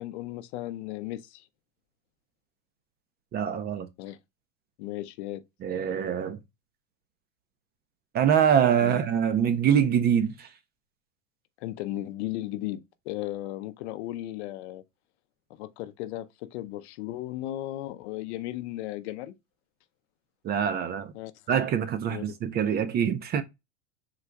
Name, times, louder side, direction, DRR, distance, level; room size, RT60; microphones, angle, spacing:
voice 1, 0.0-1.4 4.0-4.2 4.8-5.4 8.8-9.0 11.6-14.8 15.6-19.3 21.1-21.3 22.1-22.2, left 15 dB, 60° left, 0.6 m, -35 dB
voice 2, 3.3-3.9 5.6-6.4 8.1-10.5 20.4-21.1 21.5-23.4, right 8 dB, 25° right, 0.5 m, -24 dB
3.9 x 2.2 x 4.3 m
hypercardioid pair, 115°, 38 cm